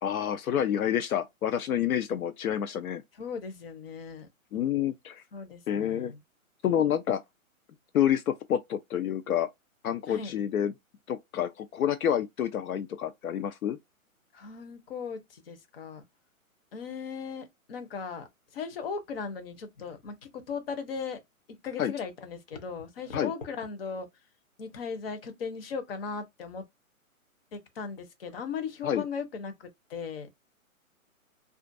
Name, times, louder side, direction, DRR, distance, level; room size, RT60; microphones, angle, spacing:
voice 1, 0.0-3.0 4.5-5.2 5.7-6.1 6.6-7.2 7.9-9.5 9.8-10.7 11.1-13.8 21.8-21.9 23.1-23.3 28.8-29.0, left 10 dB, 75° left, 0.5 m, -28 dB
voice 2, 3.2-4.3 5.3-6.2 10.1-10.3 14.3-16.0 16.7-21.2 21.6-24.1 24.6-26.6 27.5-30.3, left 5 dB, 45° left, 0.7 m, -38 dB
2.5 x 2.1 x 2.5 m
hypercardioid pair, 150°, 42 cm